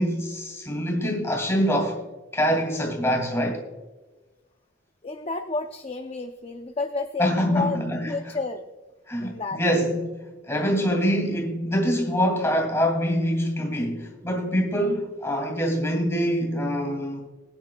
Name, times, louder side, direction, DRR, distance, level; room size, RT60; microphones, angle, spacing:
voice 1, 0.0-2.0 2.3-3.6 7.2-8.4 9.1-10.2 10.4-17.3, equal, 15° left, 2.4 m, -25 dB
voice 2, 5.0-7.8 8.1-8.6 9.2-9.6, left 3 dB, 30° left, 0.5 m, -30 dB
20.5 x 9.8 x 2.3 m
head